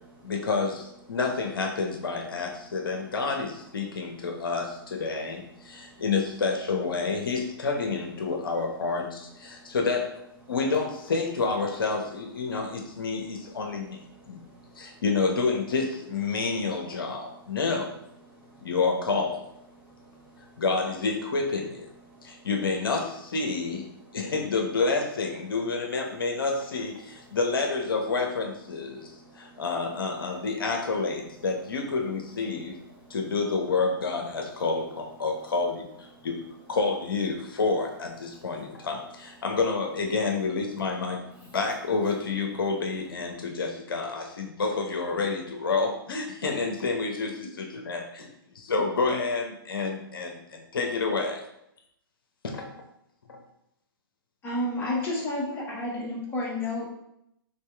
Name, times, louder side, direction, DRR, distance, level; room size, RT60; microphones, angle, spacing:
voice 1, 0.2-10.0 10.5-14.0 14.3-14.4 14.8-17.9 18.6-19.4 20.6-21.9 22.2-23.9 24.1-32.8 33.1-36.4 36.7-41.2 41.5-48.0 48.6-51.4 52.4-52.7 55.0-55.1, left 4 dB, 65° left, 2 dB, 0.8 m, -29 dB
voice 2, 5.6-6.0 9.5-9.7 14.3-14.9 18.3-18.6 19.8-20.6 22.1-22.4 28.9-29.6 33.0-33.2, right 2 dB, 10° right, -6 dB, 1.3 m, -55 dB
voice 3, 54.4-57.0, left 1 dB, 20° left, -4 dB, 1.5 m, -30 dB
4.4 x 3.3 x 3.3 m, 0.80 s
figure-of-eight pair, 115°, 12 cm